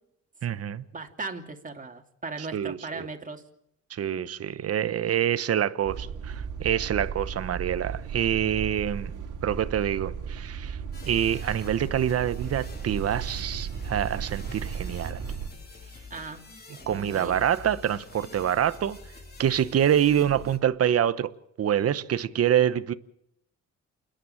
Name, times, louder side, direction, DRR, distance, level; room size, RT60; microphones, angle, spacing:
voice 1, 0.4-0.8 2.4-3.1 3.9-9.1 9.4-10.8 11.1-15.2 16.9-19.0 19.4-21.3 21.6-22.9, right 10 dB, 50° right, 1.1 m, -26 dB
voice 2, 0.9-3.4 16.1-17.4, right 3 dB, 25° right, 2.8 m, -38 dB
sound 1, 5.8-15.5, right 7 dB, 85° right, 3.0 m, -35 dB
sound 2, 10.9-20.6, left 4 dB, 30° left, 3.6 m, -46 dB
29.0 x 10.5 x 8.9 m
cardioid pair, 90°, 30 cm